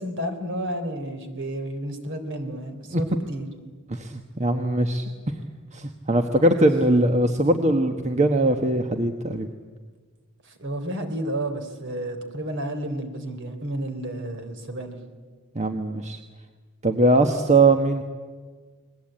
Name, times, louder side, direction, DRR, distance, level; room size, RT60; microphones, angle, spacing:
voice 1, 0.0-3.5 10.6-15.0, right 1 dB, 55° right, 7 dB, 3.5 m, -31 dB
voice 2, 3.9-5.3 5.7-9.5 15.5-16.2 16.8-18.0, right 2 dB, 30° right, 6 dB, 1.3 m, -21 dB
29.5 x 21.5 x 8.9 m, 1.5 s
head